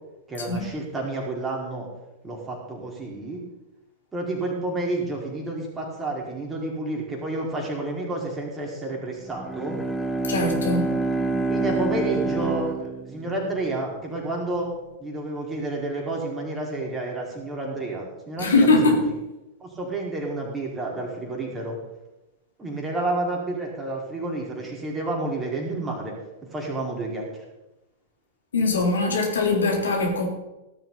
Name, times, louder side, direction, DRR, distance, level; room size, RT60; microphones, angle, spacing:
voice 1, 0.3-1.9 2.2-3.4 4.1-9.8 11.5-14.7 15.0-19.2 19.6-21.8 22.6-26.1 26.5-27.2, right 2 dB, 15° right, -1 dB, 4.8 m, -30 dB
Bowed string instrument, 9.3-13.7, right 3 dB, ahead, 1.6 m, -27 dB
voice 2, 10.3-10.9 18.4-19.0 28.5-30.2, left 3 dB, 70° left, 0 dB, 3.8 m, -21 dB
17.5 x 12.5 x 4.2 m, 0.98 s
figure-of-eight pair, 95°, 0 cm